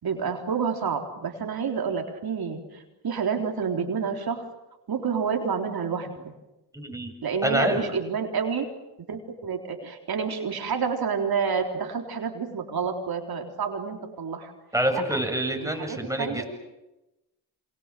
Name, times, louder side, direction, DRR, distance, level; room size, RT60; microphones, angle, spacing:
voice 1, 0.0-4.5 4.9-6.3 7.2-8.7 9.1-14.5 14.9-15.2 15.6-16.4, right 6 dB, 60° right, 3 dB, 3.9 m, -29 dB
voice 2, 6.7-7.1 7.4-7.8 14.7-16.4, right 1 dB, 10° right, 4 dB, 7.4 m, -26 dB
29.0 x 25.5 x 7.7 m, 0.96 s
cardioid pair, 60°, 41 cm